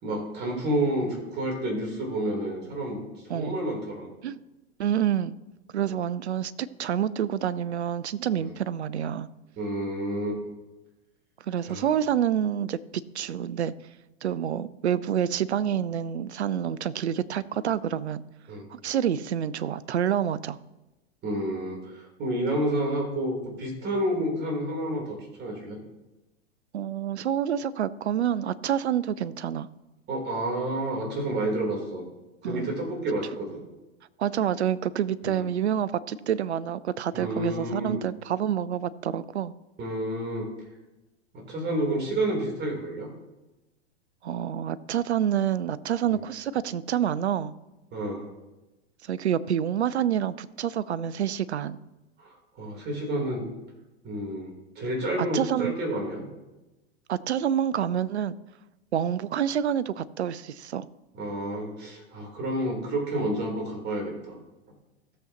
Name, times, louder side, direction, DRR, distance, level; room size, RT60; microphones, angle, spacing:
voice 1, 0.0-4.1 8.4-8.5 9.6-10.4 11.6-11.9 18.5-18.7 21.2-25.8 30.1-32.0 32.4-33.6 35.2-35.4 37.1-37.9 39.8-40.5 41.3-43.1 46.1-46.2 47.9-48.2 52.2-53.4 54.0-56.3 61.1-64.4, right 1 dB, 30° right, 0 dB, 3.3 m, -30 dB
voice 2, 4.8-5.3 5.7-9.3 11.5-13.7 14.2-18.2 18.7-20.6 26.7-29.7 32.4-32.8 34.2-39.5 44.2-47.5 49.0-51.8 55.2-55.7 57.1-58.4 58.9-60.9, right 9 dB, 80° right, 18 dB, 0.6 m, -27 dB
16.5 x 7.1 x 2.9 m, 1.1 s
hypercardioid pair, 105°, 32 cm